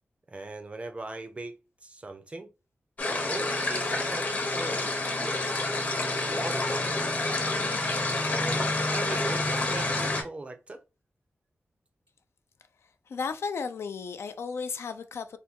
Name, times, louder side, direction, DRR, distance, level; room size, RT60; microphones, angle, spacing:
voice 1, 0.3-2.5 3.1-4.8 5.2-5.7 6.4-7.0 8.3-10.8, right 2 dB, 30° right, 0.5 m, -40 dB
sound 1, 3.0-10.2, left 2 dB, 40° left, 0.7 m, -28 dB
voice 2, 13.1-15.4, left 5 dB, 80° left, 0.4 m, -34 dB
3.4 x 2.2 x 2.8 m
wide cardioid pair, 145°, 4 cm